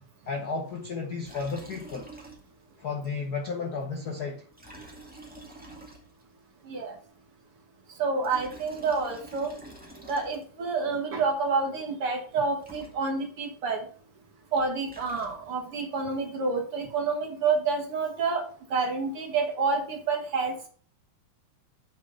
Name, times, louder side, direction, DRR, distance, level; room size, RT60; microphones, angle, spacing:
voice 1, 0.3-2.1 2.8-4.4, left 4 dB, 85° left, 0.8 m, -33 dB
Liquid, 1.2-2.7 3.0-3.1 4.5-6.4 8.0-10.7 12.3-12.4 12.6-13.4 14.6-15.7, right 1 dB, 5° right, 1.1 m, -48 dB
voice 2, 6.6-7.0 8.0-9.5 10.1-13.9 14.5-18.4 18.7-20.6, right 4 dB, 50° right, 2.1 m, -28 dB
6.9 x 6.2 x 5.5 m
omnidirectional pair, 3.6 m